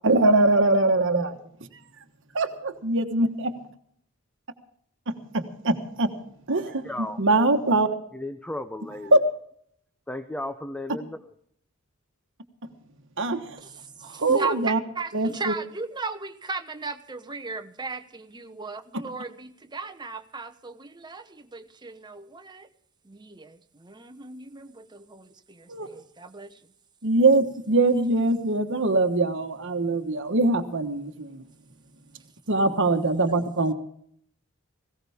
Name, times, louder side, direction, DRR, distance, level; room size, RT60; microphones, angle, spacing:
voice 1, 0.0-1.4 2.3-3.5 5.1-6.1 6.5-7.9 9.1-9.2 13.2-13.6 14.0-14.8 15.1-15.5 25.7-25.9 27.0-31.4 32.5-33.7, right 2 dB, 60° right, 6 dB, 1.3 m, -22 dB
voice 2, 6.8-7.2 8.1-9.2 10.1-11.2, left 1 dB, 5° left, 9 dB, 0.7 m, -34 dB
voice 3, 14.0-22.7 23.0-26.6, right 3 dB, 20° right, 8 dB, 1.1 m, -37 dB
19.0 x 17.0 x 3.5 m, 0.66 s
head